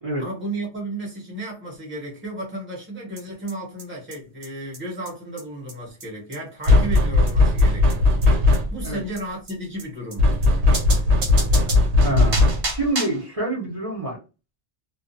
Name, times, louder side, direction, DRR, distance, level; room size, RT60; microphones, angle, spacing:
voice 1, 0.2-8.1 8.4-10.4, right 1 dB, 10° right, 1.0 m, -33 dB
sound 1, 3.2-3.3 3.5-3.6 3.8-3.9 4.1-4.2 4.4-4.5 4.7-4.8 5.1-5.2 5.4-5.5 5.7-5.8 6.0-6.1 6.3-6.4 6.6-6.7 7.0-7.1 7.3-7.4 7.6-7.7 7.9-8.0 8.2-8.3 8.5-8.6 8.8-8.9 9.2-9.3 9.5-9.6 9.8-9.9 10.1-10.2 10.4-10.5 10.7-13.3, right 3 dB, 65° right, 1.0 m, -31 dB
sound 2, 6.7-8.9 10.2-12.9, left 2 dB, 90° right, 0.9 m, -18 dB
voice 2, 12.0-14.2, right 1 dB, 35° right, 0.9 m, -27 dB
2.3 x 2.3 x 2.6 m
omnidirectional pair, 1.1 m